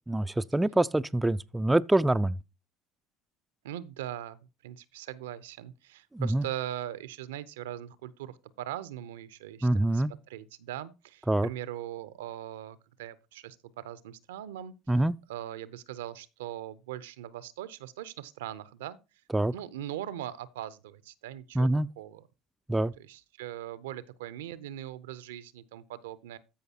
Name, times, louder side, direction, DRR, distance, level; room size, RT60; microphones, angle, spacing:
voice 1, 0.1-2.4 6.1-6.4 9.6-10.1 11.3-11.5 14.9-15.1 19.3-19.5 21.6-21.9 22.7-22.9, right 1 dB, 10° right, 0.4 m, -25 dB
voice 2, 3.6-15.0 15.3-19.0 19.5-21.7 22.0-22.2 23.0-26.4, right 12 dB, 75° right, 0.6 m, -40 dB
14.0 x 5.2 x 2.8 m
hypercardioid pair, 70°, 0 cm